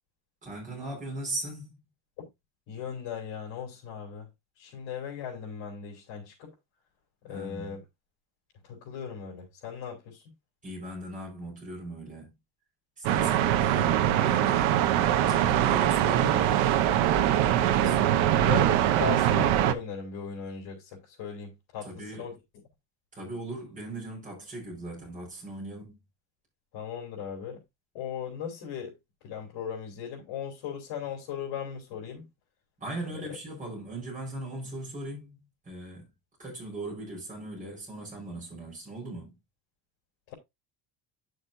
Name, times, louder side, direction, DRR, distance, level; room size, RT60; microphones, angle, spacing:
voice 1, 0.4-1.8 7.3-7.8 10.6-12.3 13.0-16.6 17.3-18.0 21.8-22.4 23.1-26.0 32.8-36.1 36.4-39.3, right 1 dB, 15° right, 5.1 m, -39 dB
voice 2, 2.7-4.3 4.6-6.5 7.2-7.8 8.7-10.2 17.8-18.1 18.4-22.3 26.7-27.6 27.9-28.9 29.2-32.3, left 8 dB, 65° left, 3.2 m, -37 dB
sound 1, 13.0-19.7, right 11 dB, 80° right, 1.1 m, -23 dB
9.8 x 6.5 x 2.7 m
cardioid pair, 160°, 47 cm